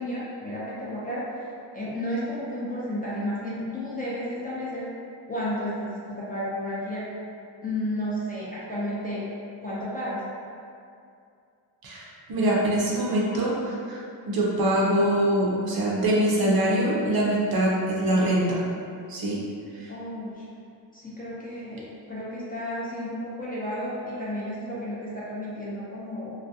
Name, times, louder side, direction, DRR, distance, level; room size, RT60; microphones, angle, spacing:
voice 1, 0.0-1.4 1.7-4.9 5.3-7.1 7.6-9.2 9.6-10.2 19.9-20.5 20.9-26.3, equal, 20° left, -8 dB, 0.5 m, -32 dB
voice 2, 11.8-18.6 19.1-19.4 19.7-19.9, right 1 dB, 50° right, -4 dB, 0.6 m, -24 dB
2.4 x 2.1 x 2.6 m, 2.4 s
cardioid pair, 90°, 46 cm